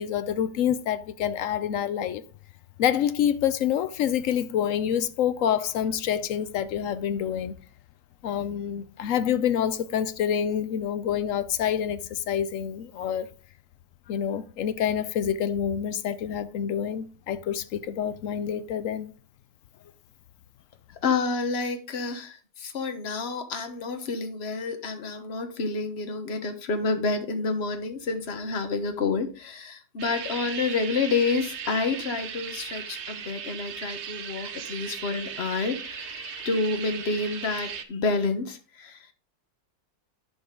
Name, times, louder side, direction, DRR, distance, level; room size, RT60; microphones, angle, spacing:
voice 1, 0.0-2.2 2.8-7.5 8.2-13.3 14.1-19.1, left 9 dB, 70° left, 0.7 m, -27 dB
voice 2, 20.9-39.1, left 4 dB, 40° left, 1.2 m, -29 dB
sound 1, 30.0-37.8, right 8 dB, 55° right, 0.8 m, -37 dB
10.5 x 5.6 x 3.7 m
omnidirectional pair, 2.0 m